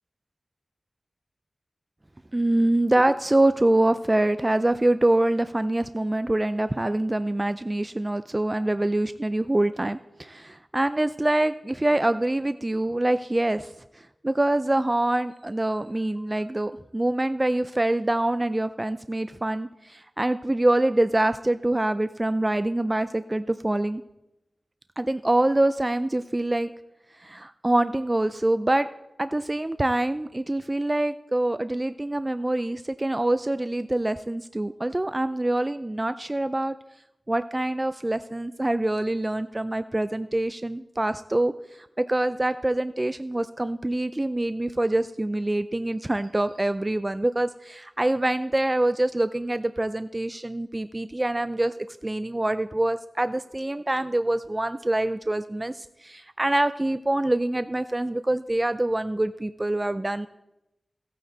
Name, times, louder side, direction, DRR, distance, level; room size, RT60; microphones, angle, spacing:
voice 1, 2.3-24.0 25.0-26.7 27.2-28.9 29.2-36.7 37.3-41.5 41.8-60.3, right 1 dB, 25° right, 12 dB, 0.3 m, -25 dB
15.5 x 9.3 x 3.9 m, 0.91 s
wide cardioid pair, 80°, 0 cm